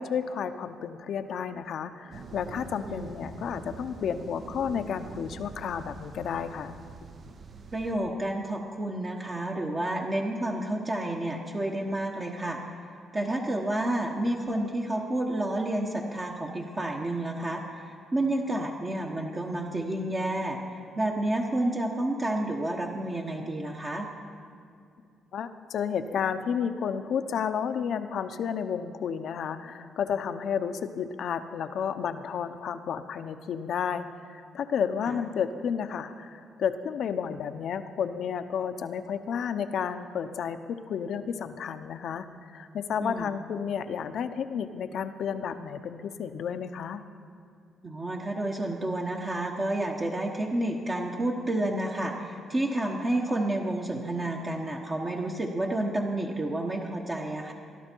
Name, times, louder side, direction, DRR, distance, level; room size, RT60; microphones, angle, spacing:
voice 1, 0.0-6.8 25.3-40.6 40.9-47.0, left 7 dB, 65° left, 10 dB, 0.7 m, -32 dB
sound 1, 2.1-8.0, right 4 dB, 55° right, 0.9 m, -44 dB
voice 2, 7.7-12.6 13.1-20.6 21.0-24.1 35.0-35.2 43.0-43.4 47.8-57.5, right 1 dB, 30° right, -1 dB, 1.2 m, -30 dB
19.5 x 12.0 x 4.6 m, 2.4 s
cardioid pair, 90°, 0 cm